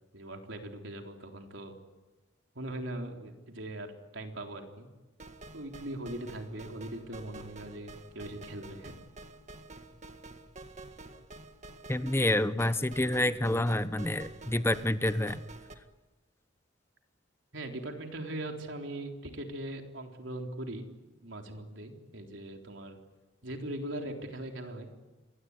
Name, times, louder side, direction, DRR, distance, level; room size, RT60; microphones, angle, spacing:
voice 1, 0.1-1.8 2.6-4.9 5.5-9.0 17.5-20.9 21.2-23.0 23.4-24.9, right 1 dB, 80° right, 3 dB, 3.8 m, -40 dB
sound 1, 5.2-15.7, right 2 dB, 40° right, 1.9 m, -49 dB
voice 2, 11.9-15.4, left 1 dB, 15° left, 13 dB, 0.9 m, -28 dB
27.5 x 22.0 x 9.7 m, 1.1 s
head